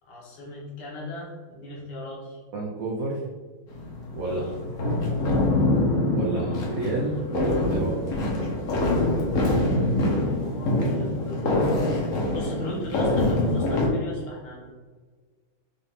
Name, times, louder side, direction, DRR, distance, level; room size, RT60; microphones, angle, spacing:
voice 1, 0.0-2.4 4.3-4.6 6.3-6.6 10.1-11.8 12.3-14.7, left 1 dB, 80° left, -4 dB, 2.2 m, -38 dB
voice 2, 2.5-3.2 4.1-4.4 4.8-4.9 6.1-8.0, right 3 dB, 80° right, -3 dB, 0.7 m, -29 dB
sound 1, 3.7-13.9, left 2 dB, 55° left, 0.9 m, -25 dB
5.3 x 2.5 x 3.4 m, 1.4 s
omnidirectional pair, 2.4 m